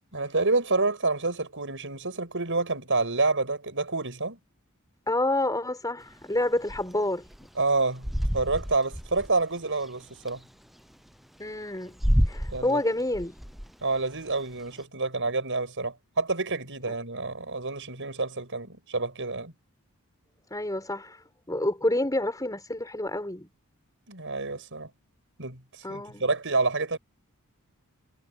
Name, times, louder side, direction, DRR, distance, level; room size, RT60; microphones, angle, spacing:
voice 1, 0.1-4.4 7.6-8.1 8.3-10.4 12.5-12.8 13.8-19.5 24.1-24.9 25.4-25.6 25.9-27.0, right 3 dB, 60° right, 7.8 m, -28 dB
voice 2, 5.1-7.5 11.4-12.0 12.3-13.4 20.5-23.5 25.8-26.3, left 1 dB, 15° left, 6.6 m, -28 dB
sound 1, 6.1-10.4 10.9-11.0 11.4-14.8, equal, ahead, 0.7 m, -29 dB
head